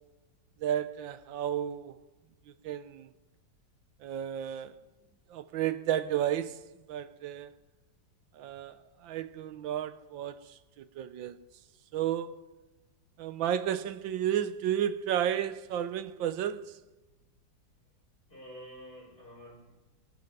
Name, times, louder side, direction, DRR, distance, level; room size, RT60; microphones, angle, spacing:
voice 1, 0.6-2.0 2.6-3.1 4.0-4.7 5.3-7.5 8.3-11.4 11.9-12.4 13.2-16.8, right 10 dB, 85° right, 1.5 m, -32 dB
voice 2, 18.3-19.8, equal, 30° left, 4.5 m, -48 dB
22.0 x 10.5 x 5.4 m
omnidirectional pair, 2.0 m